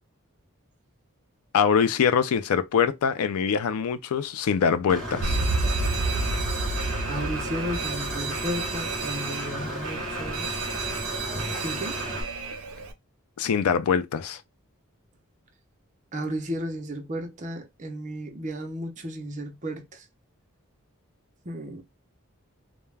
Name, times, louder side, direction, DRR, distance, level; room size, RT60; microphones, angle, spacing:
voice 1, 1.5-5.4 13.4-14.4, left 7 dB, 85° left, 0.4 m, -23 dB
Engine / Mechanisms, 4.9-12.2, equal, ahead, 0.8 m, -34 dB
Alarm, 5.2-12.9, right 3 dB, 80° right, 0.5 m, -30 dB
voice 2, 7.1-10.5 11.6-12.0 16.1-20.0 21.4-21.8, equal, 35° right, 0.6 m, -34 dB
2.3 x 2.1 x 3.2 m
head